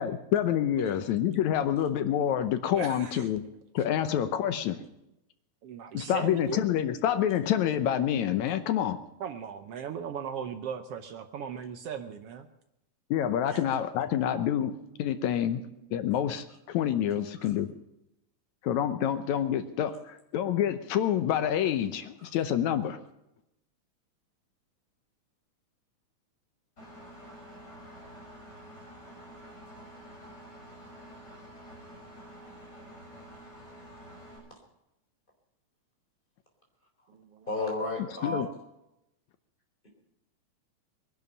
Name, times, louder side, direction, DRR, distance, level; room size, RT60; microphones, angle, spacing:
voice 1, 0.0-3.5 3.7-4.8 5.9-9.0 13.1-15.6 15.9-17.7 18.6-23.0 38.2-38.5, left 10 dB, 75° left, 10 dB, 2.1 m, -27 dB
voice 2, 2.7-3.3 5.6-6.6 9.2-12.5 15.7-16.0 37.1-37.5, right 7 dB, 70° right, 8 dB, 1.5 m, -38 dB
Engine, 26.8-34.4, equal, 30° left, 7.0 m, -48 dB
voice 3, 37.5-38.5, left 2 dB, 15° left, 1 dB, 3.9 m, -32 dB
22.0 x 11.0 x 5.5 m, 0.87 s
omnidirectional pair, 3.5 m